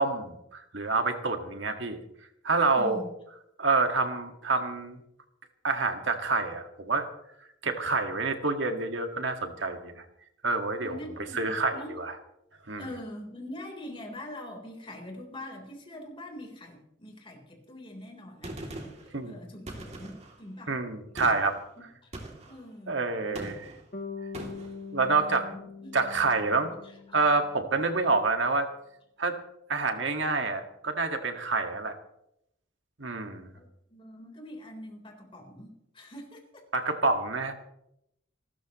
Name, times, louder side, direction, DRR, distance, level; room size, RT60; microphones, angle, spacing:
voice 1, 0.0-2.0 2.4-3.0 3.6-5.0 5.6-7.1 7.6-10.0 10.4-11.0 11.3-12.1 12.7-12.8 19.1-19.4 20.7-21.6 22.9-23.6 24.9-25.5 25.9-26.7 27.1-28.7 29.2-29.4 29.7-32.0 33.0-33.5 36.7-37.5, right 3 dB, 75° right, 5 dB, 1.9 m, -27 dB
voice 2, 2.8-3.1 10.8-11.9 12.8-18.9 19.2-20.8 22.0-22.1 22.5-23.8 25.2-26.0 26.8-27.2 33.5-36.6, left 1 dB, 30° left, 1 dB, 3.9 m, -44 dB
Gunshot gunfire, 18.4-19.1 19.7-20.4 21.2-21.6 22.1-22.6 23.4-23.8 24.3-24.8, right 1 dB, 35° right, 2.8 m, -41 dB
Bass guitar, 23.9-28.0, left 4 dB, 50° left, 1.4 m, -43 dB
28.5 x 13.5 x 3.1 m, 0.80 s
head